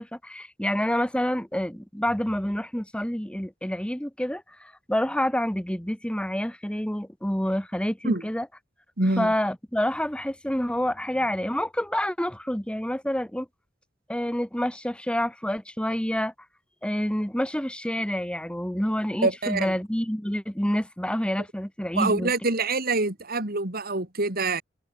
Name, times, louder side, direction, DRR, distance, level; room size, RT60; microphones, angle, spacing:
voice 1, 0.0-8.5 9.2-13.5 14.1-16.3 16.8-22.3, equal, 5° left, 1.6 m, -28 dB
voice 2, 9.0-9.3 19.2-19.7 22.0-24.6, right 3 dB, 55° right, 3.4 m, -25 dB
head